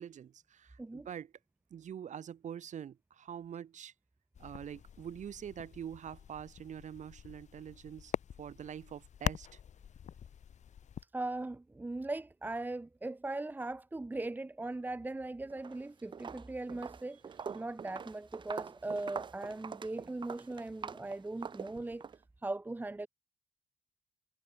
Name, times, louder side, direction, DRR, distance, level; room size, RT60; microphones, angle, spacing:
voice 1, 0.0-1.3 1.7-3.9 4.4-8.1 8.4-9.6, right 9 dB, 50° right, 5.4 m, -45 dB
sound 1, 4.3-11.0, left 8 dB, 45° left, 5.9 m, -43 dB
voice 2, 11.1-17.2 17.5-22.0 22.4-23.1, right 2 dB, 10° right, 1.5 m, -39 dB
Walk footsteps, 15.5-15.8 16.1-22.2, right 6 dB, 30° right, 1.0 m, -44 dB
cardioid pair, 155°, 16 cm